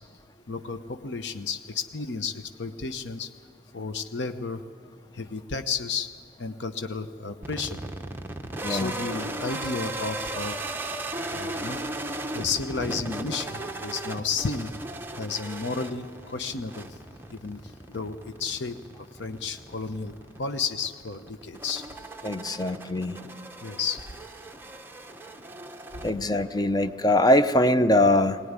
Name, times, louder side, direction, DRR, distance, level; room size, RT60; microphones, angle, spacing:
voice 1, 0.5-3.3 3.7-4.6 5.1-6.1 6.4-7.8 8.7-10.6 11.3-11.8 12.3-14.7 15.2-16.9 17.3-17.6 17.9-18.8 19.2-20.1 20.4-21.8 23.6-24.0, left 4 dB, 70° left, 8 dB, 0.9 m, -32 dB
sound 1, 7.4-26.6, right 2 dB, 10° right, 0.9 m, -37 dB
voice 2, 22.2-23.2 26.0-28.4, left 1 dB, 20° left, 10 dB, 0.7 m, -22 dB
21.0 x 18.5 x 9.7 m, 2.3 s
head